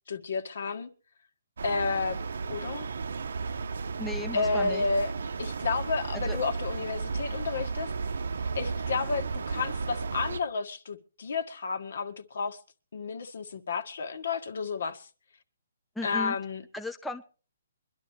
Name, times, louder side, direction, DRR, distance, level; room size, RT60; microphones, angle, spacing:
voice 1, 0.1-0.9 1.6-2.2 2.4-2.9 4.3-5.1 5.4-7.9 8.5-12.6 12.9-15.1 16.0-16.6, left 4 dB, 65° left, 1.7 m, -31 dB
sound 1, 1.6-10.4, right 4 dB, 75° right, 0.8 m, -34 dB
voice 2, 4.0-4.8 6.1-6.4 16.0-16.4 16.7-17.2, left 1 dB, 5° left, 0.6 m, -36 dB
23.5 x 12.0 x 3.1 m
hypercardioid pair, 170°, 0 cm